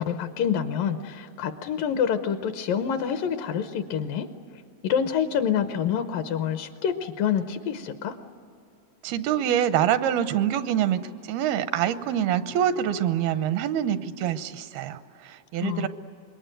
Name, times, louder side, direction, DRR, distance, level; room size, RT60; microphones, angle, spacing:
voice 1, 0.0-4.3 4.8-8.2 15.6-15.9, left 8 dB, 75° left, 8 dB, 2.5 m, -27 dB
voice 2, 9.0-15.9, right 10 dB, 85° right, 11 dB, 2.8 m, -25 dB
26.0 x 22.5 x 9.1 m, 2.5 s
omnidirectional pair, 4.3 m